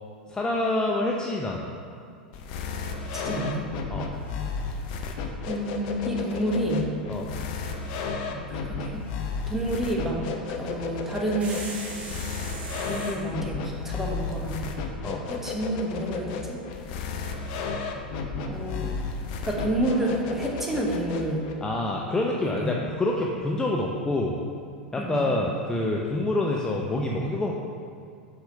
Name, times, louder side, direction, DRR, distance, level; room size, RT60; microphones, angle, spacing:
voice 1, 0.3-1.7 3.9-4.1 7.1-7.3 15.0-15.2 21.6-24.4 24.9-27.5, left 2 dB, 15° left, -1 dB, 0.6 m, -27 dB
sound 1, 2.3-21.5, left 4 dB, 50° left, 0.7 m, -33 dB
voice 2, 3.1-3.7 5.4-7.0 8.3-9.0 9.5-10.2 10.6-11.7 12.9-14.6 15.3-16.6 18.4-19.0 19.4-21.5 22.4-22.8 25.0-25.3, right 1 dB, 5° right, -2 dB, 1.3 m, -29 dB
sound 2, 11.4-13.2, right 2 dB, 25° right, 1.5 m, -38 dB
6.0 x 4.9 x 5.6 m, 2.3 s
figure-of-eight pair, 85°, 5 cm